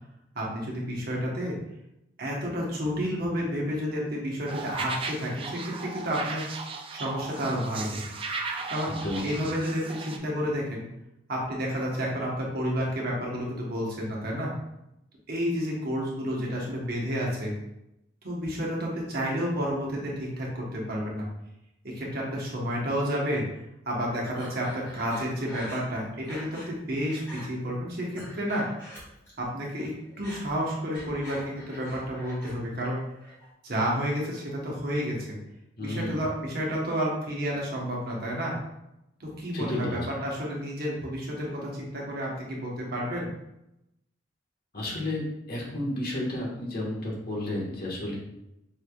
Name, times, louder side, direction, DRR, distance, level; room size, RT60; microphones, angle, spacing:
voice 1, 0.3-1.6 2.2-6.5 6.9-8.0 8.7-8.9 9.2-10.9 11.3-14.5 15.3-17.5 18.2-21.3 21.8-23.4 23.9-28.7 29.4-33.0 33.6-35.4 35.8-38.6 39.2-43.3, equal, 55° right, -3 dB, 1.1 m, -30 dB
sound 1, 4.5-10.2, right 4 dB, 30° right, 0.4 m, -36 dB
voice 2, 8.9-9.2 35.8-36.2 39.5-40.0 44.7-48.1, left 1 dB, 55° left, -3 dB, 1.4 m, -32 dB
Breathing, 24.3-26.7 27.0-27.5 27.9-29.5 29.7-32.5 32.8-33.5, equal, 15° left, 1.5 m, -45 dB
5.3 x 3.4 x 2.3 m, 0.86 s
head